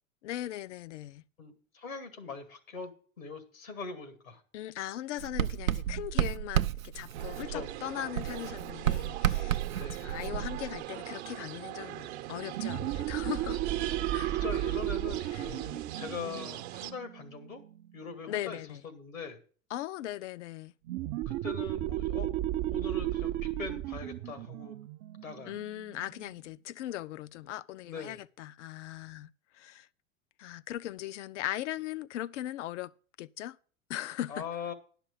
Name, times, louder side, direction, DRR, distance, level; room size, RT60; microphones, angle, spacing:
voice 1, 0.2-1.2 4.5-13.6 14.1-14.3 15.3-15.5 18.3-18.9 19.7-20.7 25.5-29.9 30.4-32.9 33.2-33.6 33.9-34.4, left 13 dB, 65° left, 0.6 m, -39 dB
voice 2, 1.4-4.4 7.5-7.7 9.7-10.1 14.3-17.6 17.9-18.6 18.8-19.4 21.3-22.3 22.7-24.8 25.2-25.5 27.8-28.2 34.3-34.7, left 4 dB, 90° left, 1.8 m, -41 dB
Writing, 5.2-7.8 8.2-10.9, right 11 dB, 85° right, 0.6 m, -31 dB
sound 1, 7.1-16.9, right 14 dB, 55° right, 0.9 m, -41 dB
sound 2, 12.5-17.8 20.9-26.2, right 14 dB, 35° right, 0.5 m, -34 dB
11.0 x 5.9 x 6.9 m
hypercardioid pair, 95°, 39 cm